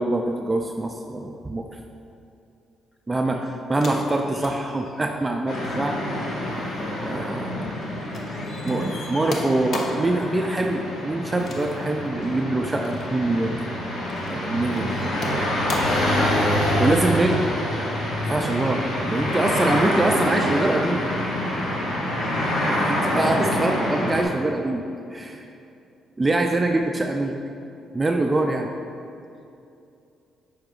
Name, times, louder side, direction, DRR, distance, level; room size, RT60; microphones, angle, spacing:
voice 1, 0.0-1.7 3.1-6.4 7.0-7.7 8.7-13.7 14.3-14.9 15.2-15.5 16.8-17.4 18.1-21.0 22.7-24.8 25.1-25.5 26.2-27.4 27.9-28.7, right 2 dB, 20° right, 3 dB, 0.4 m, -24 dB
sound 1, 3.7-7.8 8.1-10.1 11.4-12.4 12.8-13.1 13.7-14.3 14.7-16.1 17.3-17.4, left 2 dB, 60° left, 0.8 m, -37 dB
sound 2, 5.5-24.2, equal, 80° left, 1.3 m, -26 dB
voice 2, 8.6-9.1 9.6-9.7 14.6-15.0 15.3-15.7 16.1-17.2 22.1-23.1, left 1 dB, 25° left, 1 dB, 0.9 m, -38 dB
8.7 x 5.7 x 2.3 m, 2.7 s
cardioid pair, 90°, 0 cm